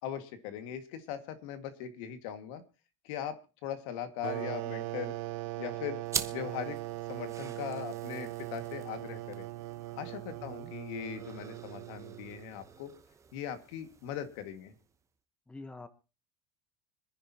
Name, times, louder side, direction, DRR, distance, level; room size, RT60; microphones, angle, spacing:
voice 1, 0.0-2.6 3.0-5.1 5.6-6.0 6.3-6.8 7.1-9.5 10.0-12.9 13.3-14.7, left 9 dB, 70° left, 8 dB, 2.0 m, -40 dB
sound 1, 4.2-12.6, right 19 dB, 75° right, 0.7 m, -40 dB
sound 2, 6.1-15.0, right 6 dB, 15° right, 0.9 m, -45 dB
voice 2, 10.4-10.7 15.5-15.9, left 3 dB, 5° left, 9 dB, 1.0 m, -46 dB
26.0 x 10.0 x 2.9 m, 0.32 s
supercardioid pair, 150°, 17 cm